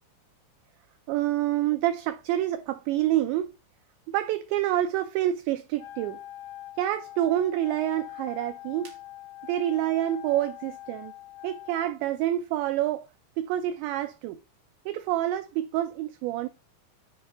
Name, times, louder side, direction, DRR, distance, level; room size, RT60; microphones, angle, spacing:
voice 1, 1.1-3.5 4.1-6.2 6.8-9.0 9.5-11.1 11.4-13.1 13.4-14.4 14.9-16.5, right 13 dB, 85° right, 2.5 m, -27 dB
Wind instrument woodwind instrument, 5.8-11.9, left 14 dB, 85° left, 2.1 m, -43 dB
10.0 x 4.4 x 4.7 m
omnidirectional pair, 5.7 m